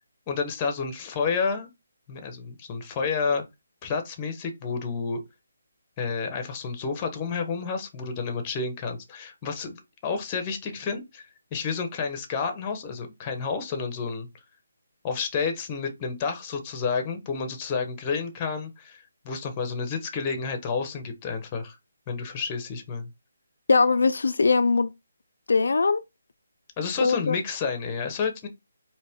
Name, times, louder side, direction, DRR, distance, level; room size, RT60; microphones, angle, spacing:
voice 1, 0.3-1.7 2.1-3.4 3.8-5.2 6.0-9.8 10.0-14.3 15.0-21.8 22.1-23.1 26.8-28.5, left 5 dB, 20° left, 0.9 m, -30 dB
voice 2, 23.7-24.9 25.5-26.0 27.0-27.4, left 4 dB, 75° left, 0.3 m, -21 dB
4.2 x 2.9 x 3.5 m
hypercardioid pair, 165°, 0 cm